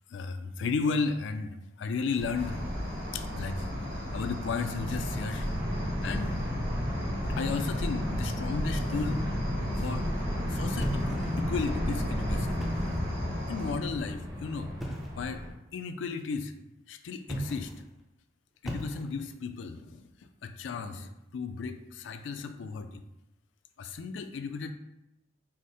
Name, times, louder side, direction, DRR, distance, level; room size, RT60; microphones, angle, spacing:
voice 1, 0.1-3.7 4.1-5.5 6.0-6.4 7.3-9.3 9.8-10.1 10.5-12.6 13.5-15.4 15.7-16.5 16.9-17.7 18.6-20.0 20.4-23.0 23.8-24.7, left 4 dB, 70° left, 8 dB, 0.3 m, -34 dB
sound 1, 2.2-15.5, equal, 20° right, 0.8 m, -33 dB
Cricket, 2.3-13.7, equal, 50° right, 1.5 m, -39 dB
sound 2, 10.8-11.6 12.5-13.2 14.8-15.2 17.2-17.9 18.6-19.4, equal, ahead, 0.4 m, -37 dB
4.8 x 2.1 x 4.2 m, 0.88 s
head